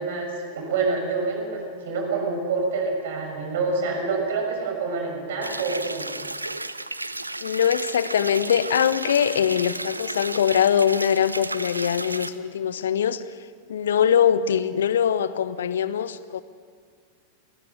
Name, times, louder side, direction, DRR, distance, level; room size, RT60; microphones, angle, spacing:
voice 1, 0.0-6.1, right 4 dB, 55° right, 2 dB, 6.4 m, -27 dB
sound 1, 5.4-12.3, right 2 dB, 85° right, 0.8 m, -33 dB
voice 2, 7.4-13.2 13.7-16.4, left 8 dB, 65° left, 15 dB, 1.0 m, -22 dB
28.0 x 20.0 x 6.8 m, 2.1 s
figure-of-eight pair, 90°, 0 cm